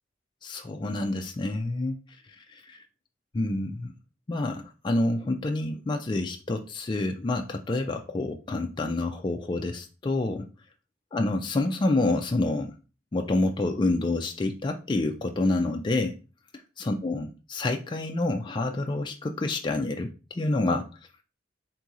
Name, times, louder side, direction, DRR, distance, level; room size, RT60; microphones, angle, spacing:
voice 1, 0.4-1.9 2.4-2.8 3.3-3.9 4.3-10.5 11.1-12.7 13.1-16.1 16.8-20.9, left 2 dB, 25° left, 4 dB, 0.4 m, -28 dB
3.7 x 2.7 x 4.7 m, 0.33 s
head